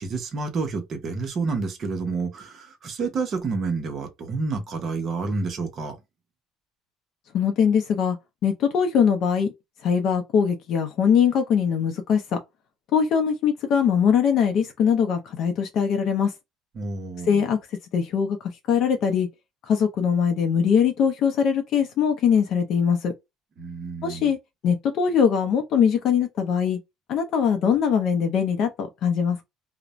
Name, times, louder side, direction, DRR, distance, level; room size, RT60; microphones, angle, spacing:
voice 1, 0.0-6.0 16.8-17.4 23.6-24.3, right 4 dB, 40° right, 0.7 m, -29 dB
voice 2, 7.3-8.2 8.4-9.5 9.8-12.4 12.9-16.3 17.3-17.6 17.9-18.4 18.7-19.3 19.6-23.1 24.0-24.4 24.6-26.8 27.1-29.4, left 7 dB, 55° left, 0.5 m, -21 dB
2.5 x 2.1 x 2.9 m
cardioid pair, 140°, 0 cm